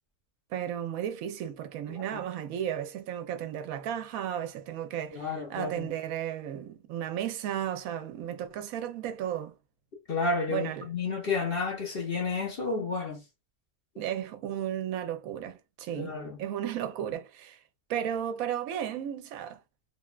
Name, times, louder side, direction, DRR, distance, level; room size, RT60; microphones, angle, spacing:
voice 1, 0.5-9.5 10.5-10.9 14.0-17.6 17.9-19.6, right 10 dB, 80° right, 1.0 m, -34 dB
voice 2, 1.9-2.2 5.1-5.9 10.1-13.2 16.0-16.4, left 4 dB, 50° left, 0.8 m, -31 dB
3.0 x 2.2 x 2.3 m
omnidirectional pair, 1.5 m